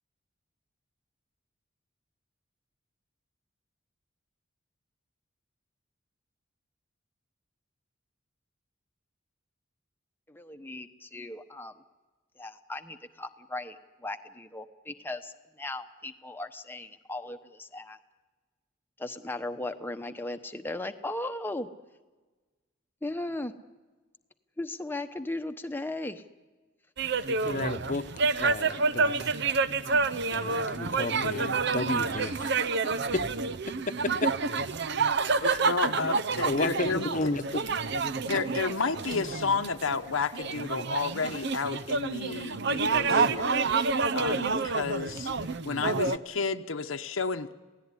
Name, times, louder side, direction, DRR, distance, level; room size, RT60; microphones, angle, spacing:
voice 1, 10.3-11.7 12.4-18.0 19.0-21.7 23.0-23.5 24.6-26.2, left 2 dB, 10° left, 7 dB, 1.0 m, -37 dB
sound 1, 27.0-46.2, right 4 dB, 55° right, 0.8 m, -28 dB
voice 2, 27.3-28.1 28.4-29.2 30.3-32.5 33.1-33.2 33.9-34.3 35.4-35.6 36.4-37.6 38.3-38.4, left 2 dB, 40° left, 9 dB, 1.0 m, -32 dB
voice 3, 35.4-37.3 38.3-45.3 45.6-47.5, left 4 dB, 80° left, 6 dB, 1.0 m, -32 dB
28.0 x 18.0 x 9.9 m, 1.3 s
head